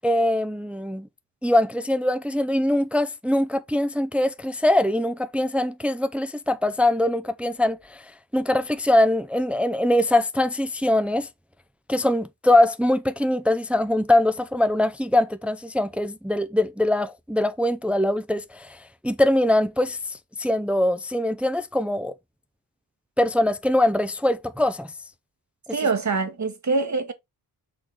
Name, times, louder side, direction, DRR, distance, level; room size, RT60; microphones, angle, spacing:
voice 1, 0.0-1.1 1.4-8.0 8.3-11.3 11.9-22.1 23.2-24.9, left 1 dB, 5° right, 0.5 m, -22 dB
voice 2, 25.7-27.1, right 4 dB, 45° right, 1.2 m, -24 dB
6.4 x 3.8 x 4.6 m
cardioid pair, 90°, 39 cm